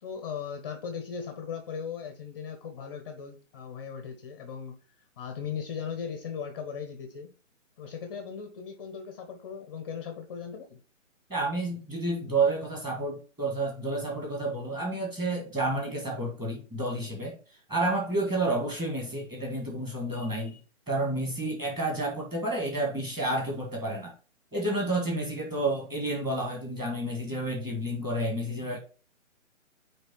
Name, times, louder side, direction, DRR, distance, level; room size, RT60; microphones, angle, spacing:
voice 1, 0.0-4.8 5.2-7.3 7.8-10.8, left 7 dB, 20° left, 0.6 m, -38 dB
voice 2, 11.3-17.4 17.7-20.6 20.9-24.1 24.5-28.8, right 2 dB, 10° right, 1.7 m, -30 dB
8.8 x 3.2 x 4.4 m
hypercardioid pair, 150°, 39 cm